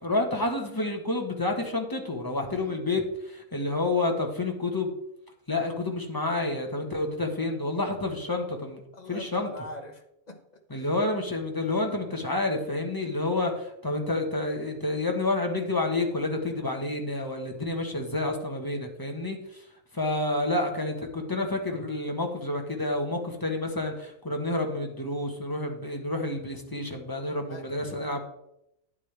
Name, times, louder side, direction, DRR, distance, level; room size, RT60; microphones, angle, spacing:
voice 1, 0.0-4.9 5.5-8.8 9.1-9.5 10.7-19.6 19.9-28.3, left 2 dB, 15° left, 2 dB, 1.3 m, -29 dB
voice 2, 2.5-2.9 8.9-10.4 10.8-10.9 27.4-28.1, left 1 dB, 35° left, 5 dB, 1.0 m, -44 dB
9.9 x 8.7 x 3.4 m, 0.80 s
omnidirectional pair, 1.4 m